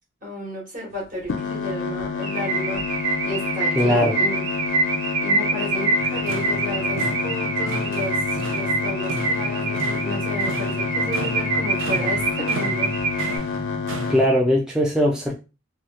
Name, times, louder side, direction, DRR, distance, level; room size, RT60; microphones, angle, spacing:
voice 1, 0.2-2.8 3.2-4.5 5.2-12.9, left 1 dB, 40° right, 1.3 m, -33 dB
sound 1, 1.3-14.2, left 5 dB, 70° left, 0.5 m, -29 dB
Car / Alarm, 2.2-13.4, right 3 dB, 65° right, 1.2 m, -26 dB
voice 2, 3.8-4.1 14.1-15.3, equal, 5° right, 0.4 m, -19 dB
sound 2, 6.0-14.3, right 2 dB, 80° right, 0.6 m, -33 dB
3.0 x 2.4 x 3.0 m
head